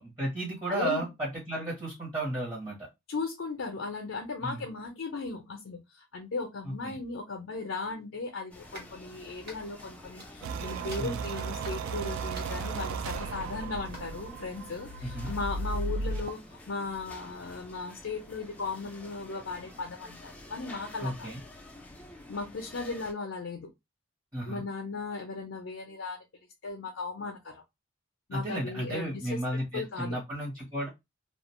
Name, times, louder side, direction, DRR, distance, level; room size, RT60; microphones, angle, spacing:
voice 1, 0.0-2.9 4.4-4.6 6.6-7.0 11.0-11.2 15.0-15.3 21.0-21.4 24.3-24.6 28.3-30.9, right 1 dB, 15° right, 0.8 m, -33 dB
voice 2, 0.7-1.0 3.1-21.3 22.3-23.7 24.5-26.2 26.6-27.6 28.3-29.4 29.7-30.2, left 3 dB, 65° left, 0.5 m, -37 dB
sound 1, 8.5-23.1, left 1 dB, 5° left, 0.4 m, -49 dB
sound 2, 8.7-8.9 9.5-9.9 10.2-10.6 10.9-11.9 12.3-12.7 13.8-14.0, right 1 dB, 50° right, 1.1 m, -47 dB
sound 3, 10.4-16.3, right 4 dB, 80° right, 0.3 m, -35 dB
2.4 x 2.2 x 2.9 m
head